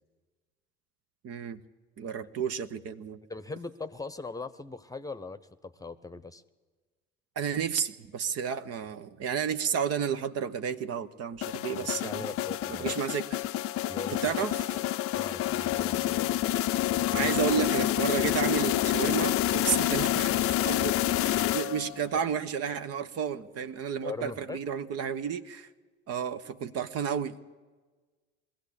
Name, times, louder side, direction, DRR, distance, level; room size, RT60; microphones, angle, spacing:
voice 1, 1.2-1.6 2.0-3.2 7.4-12.2 12.7-13.4 14.2-14.8 17.1-25.7 26.1-27.4, right 7 dB, 50° right, 11 dB, 1.1 m, -32 dB
voice 2, 3.3-6.4 11.7-12.9 13.9-14.3 15.1-16.5 17.0-17.3 24.0-24.6, left 3 dB, 10° left, 13 dB, 1.0 m, -40 dB
sound 1, 11.4-22.1, left 13 dB, 45° left, 0.6 m, -28 dB
21.0 x 15.5 x 8.6 m, 1.3 s
hypercardioid pair, 70°, 32 cm